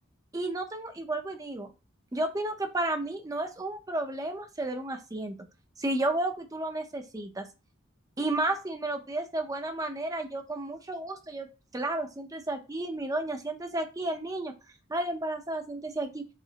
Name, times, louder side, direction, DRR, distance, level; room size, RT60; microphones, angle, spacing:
voice 1, 0.3-1.7 2.1-5.3 5.8-7.5 8.2-11.5 11.7-14.5 14.9-16.3, right 2 dB, 20° right, 5 dB, 0.5 m, -32 dB
4.9 x 2.0 x 2.7 m, 0.30 s
head